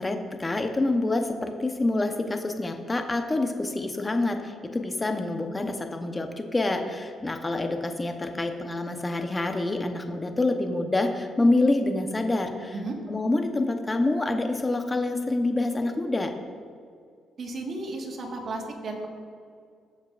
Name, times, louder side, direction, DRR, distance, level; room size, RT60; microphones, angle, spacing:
voice 1, 0.0-12.7 13.1-16.3, left 2 dB, 20° left, 5 dB, 0.9 m, -27 dB
voice 2, 17.4-19.1, right 2 dB, 50° right, 1 dB, 1.6 m, -34 dB
16.0 x 7.2 x 2.5 m, 2.2 s
cardioid pair, 90°, 0 cm